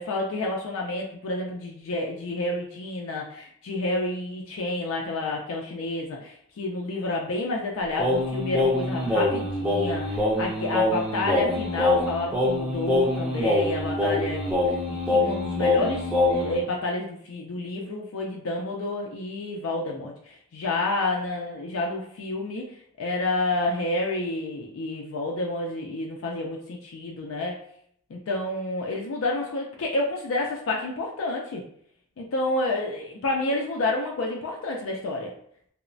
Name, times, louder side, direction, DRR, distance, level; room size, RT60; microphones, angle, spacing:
voice 1, 0.0-27.6 28.1-31.6 32.2-35.3, left 2 dB, 80° left, 0 dB, 0.4 m, -29 dB
Singing, 8.0-16.6, left 2 dB, 5° right, 0.4 m, -24 dB
3.0 x 2.0 x 2.5 m, 0.65 s
head